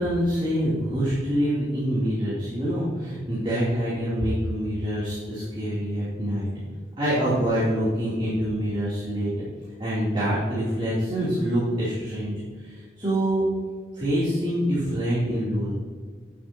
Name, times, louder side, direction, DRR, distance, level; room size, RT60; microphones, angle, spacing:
voice 1, 0.0-6.5 7.0-9.3 9.8-12.3 12.6-13.5 13.9-15.7, equal, 30° right, -9 dB, 2.9 m, -25 dB
10.0 x 9.4 x 2.8 m, 1.5 s
head